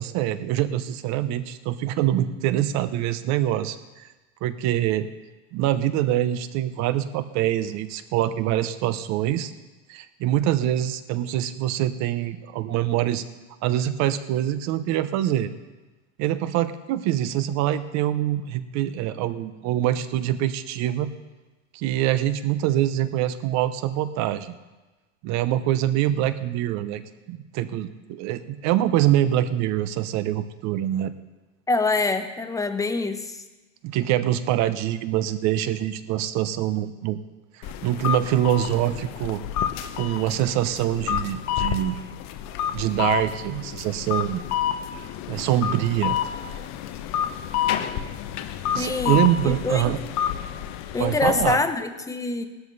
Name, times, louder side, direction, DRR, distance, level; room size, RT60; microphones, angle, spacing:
voice 1, 0.0-4.1 4.4-5.1 5.5-9.5 9.9-13.2 13.6-15.5 16.2-21.1 21.7-24.5 25.2-27.0 27.3-31.1 33.8-37.2 37.6-39.4 40.0-42.0 42.7-44.4 45.3-46.2 48.7-50.0 51.0-51.6, right 12 dB, 45° right, 12 dB, 0.9 m, -24 dB
voice 2, 31.7-33.4 48.8-50.0 50.9-52.4, left 3 dB, 10° left, 8 dB, 0.8 m, -25 dB
sound 1, 37.6-51.5, left 10 dB, 45° left, 0.9 m, -29 dB
17.0 x 13.0 x 4.1 m, 1.2 s
supercardioid pair, 140°, 38 cm